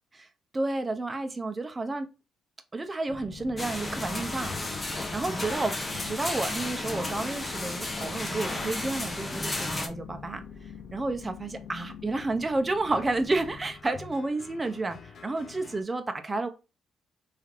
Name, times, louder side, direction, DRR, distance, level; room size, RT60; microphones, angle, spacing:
voice 1, 0.5-2.1 2.7-4.5 4.8-5.7 6.0-10.4 10.9-16.5, right 2 dB, 25° right, 0.4 m, -31 dB
sound 1, 3.1-15.8, left 6 dB, 65° left, 0.4 m, -45 dB
sound 2, 3.6-9.9, left 2 dB, 20° left, 0.6 m, -33 dB
3.1 x 2.4 x 2.4 m
cardioid pair, 90°, 0 cm